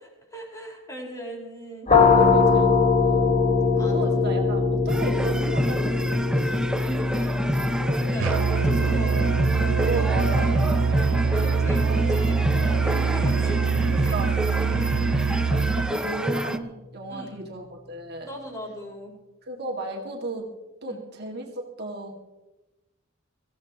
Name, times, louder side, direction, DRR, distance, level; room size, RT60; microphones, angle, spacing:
voice 1, 0.3-2.3 3.7-4.3 6.8-10.8 11.3-13.7 14.0-14.2 14.5-14.8 15.2-15.4 15.7-16.1 17.1-17.5 18.2-19.1 20.9-21.0, equal, 15° left, -2 dB, 5.0 m, -38 dB
sound 1, 1.9-13.4, left 4 dB, 35° left, 1.6 m, -23 dB
voice 2, 2.1-2.7 3.0-3.4 3.8-6.5 6.9-7.3 7.8-8.2 9.9-10.5 11.2-11.4 11.8-12.1 13.8-14.8 15.5-18.3 19.4-20.5 20.8-22.1, right 2 dB, 55° right, 0 dB, 2.2 m, -34 dB
sound 2, 4.9-16.6, equal, 5° right, 0.5 m, -28 dB
Musical instrument, 8.2-16.0, right 6 dB, 80° right, 0.4 m, -24 dB
23.5 x 15.5 x 3.0 m, 1.0 s
head